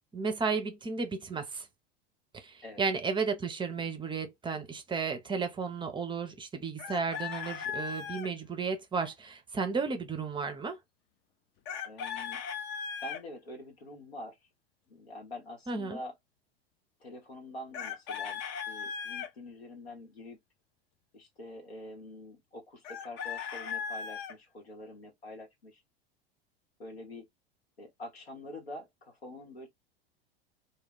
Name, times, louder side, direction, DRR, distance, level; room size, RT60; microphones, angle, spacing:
voice 1, 0.1-1.7 2.3-10.8 15.7-16.0, right 4 dB, 15° right, 0.5 m, -33 dB
Chicken rooster, 6.8-8.3 11.7-13.2 17.7-19.3 22.8-24.3, left 7 dB, 40° left, 0.5 m, -37 dB
voice 2, 11.8-12.4 13.0-14.5 14.9-16.1 17.0-18.4 18.7-20.4 21.1-25.8 26.8-27.3 27.8-29.7, left 1 dB, 85° left, 1.1 m, -46 dB
2.3 x 2.2 x 3.4 m
figure-of-eight pair, 80°, 30 cm